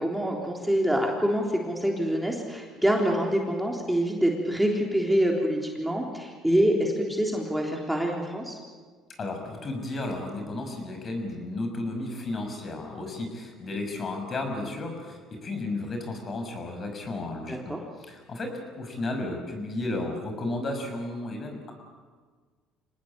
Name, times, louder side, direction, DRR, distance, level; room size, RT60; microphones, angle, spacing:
voice 1, 0.0-8.6 17.5-17.8, equal, 5° right, 0 dB, 3.6 m, -26 dB
voice 2, 9.2-21.7, left 2 dB, 40° left, 4 dB, 6.4 m, -33 dB
25.5 x 19.0 x 8.8 m, 1.5 s
supercardioid pair, 90°, 0 cm